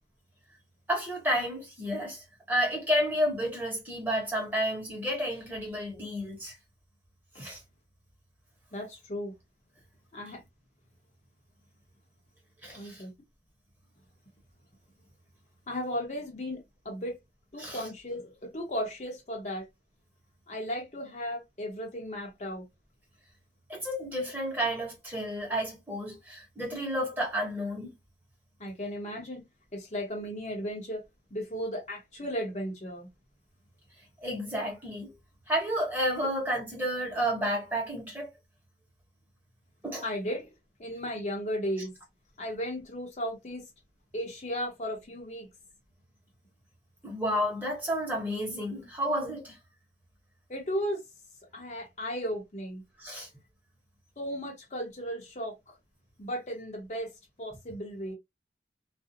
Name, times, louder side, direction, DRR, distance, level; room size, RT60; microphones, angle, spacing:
voice 1, 0.9-6.5 7.4-7.6 12.6-13.0 17.6-17.9 23.7-27.9 34.2-35.1 35.5-38.3 39.8-40.0 47.0-49.6 53.0-53.3, equal, 10° right, 1.0 m, -31 dB
voice 2, 8.7-9.3 10.1-10.4 12.8-13.1 15.7-17.2 17.5-19.7 20.5-22.6 28.6-29.4 29.7-31.0 31.3-33.1 40.0-40.5 40.8-41.9 42.4-43.6 44.1-45.5 50.5-51.0 51.5-52.8 54.2-55.8 56.2-57.1 57.4-58.1, equal, 40° left, 0.7 m, -35 dB
2.4 x 2.0 x 2.6 m
head